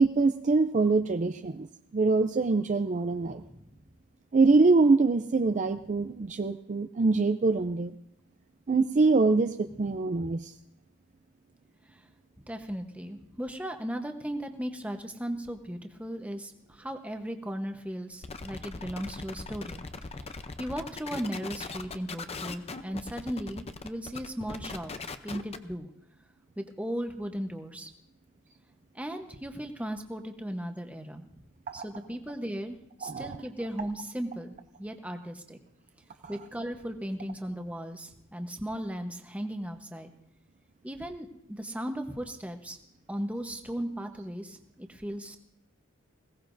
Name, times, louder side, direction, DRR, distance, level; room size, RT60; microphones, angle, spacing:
voice 1, 0.0-1.7 1.9-3.4 4.3-7.9 8.7-10.5 31.7-31.8 33.0-33.4, right 3 dB, 35° right, 8 dB, 0.4 m, -24 dB
voice 2, 3.3-3.7 11.9-12.0 12.5-19.8 20.6-24.9 25.2-25.9 26.6-27.9 28.9-31.2 31.7-35.6 36.3-40.1 40.8-42.8 43.1-45.4, equal, 5° right, 5 dB, 1.0 m, -36 dB
sound 1, 18.2-25.7, left 3 dB, 30° left, 0.6 m, -40 dB
21.0 x 17.0 x 2.6 m, 0.75 s
head